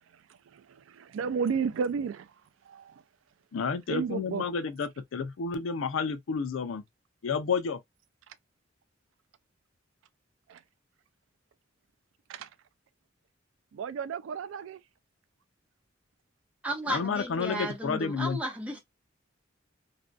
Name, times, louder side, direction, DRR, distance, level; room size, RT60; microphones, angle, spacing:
voice 1, 0.9-2.3 2.7-3.0 3.9-4.4 10.5-10.6 12.3-12.5 13.7-14.8, right 6 dB, 85° right, 0.3 m, -32 dB
voice 2, 3.5-6.8 7.2-7.8 16.9-18.4, left 5 dB, 85° left, 0.4 m, -30 dB
voice 3, 16.6-18.8, right 1 dB, 5° right, 0.8 m, -34 dB
2.5 x 2.2 x 2.4 m
head